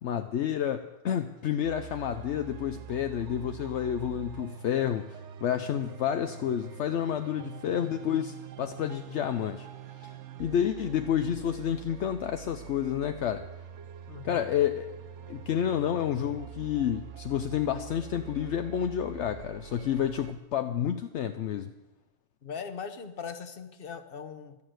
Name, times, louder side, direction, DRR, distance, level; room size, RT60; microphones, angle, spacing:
voice 1, 0.0-9.7 10.0-10.1 10.4-13.4 14.2-14.9 15.3-21.7, left 9 dB, 70° left, 8 dB, 0.9 m, -30 dB
sound 1, 1.6-20.3, right 10 dB, 75° right, 1.0 m, -45 dB
voice 2, 14.1-14.5 22.4-24.6, left 6 dB, 50° left, 9 dB, 1.2 m, -40 dB
12.5 x 10.5 x 7.9 m, 1.0 s
omnidirectional pair, 1.3 m